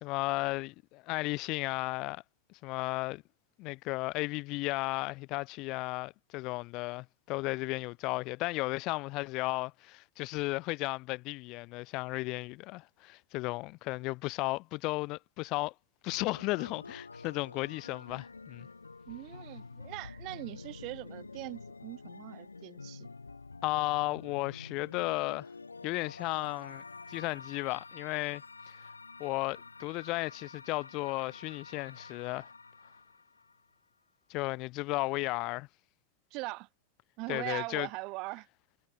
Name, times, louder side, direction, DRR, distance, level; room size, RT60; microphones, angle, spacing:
voice 1, 0.0-2.2 2.5-3.2 3.6-15.7 16.0-18.7 23.6-25.5 25.8-26.8 27.1-28.8 29.2-32.5 34.3-35.7 37.3-37.9, left 23 dB, 40° left, 2.4 m, -34 dB
sound 1, 16.1-33.7, left 4 dB, 80° left, 2.1 m, -48 dB
voice 2, 19.1-23.1 36.3-36.7 37.2-38.5, right 25 dB, 40° right, 3.8 m, -41 dB
figure-of-eight pair, 90°, 0 cm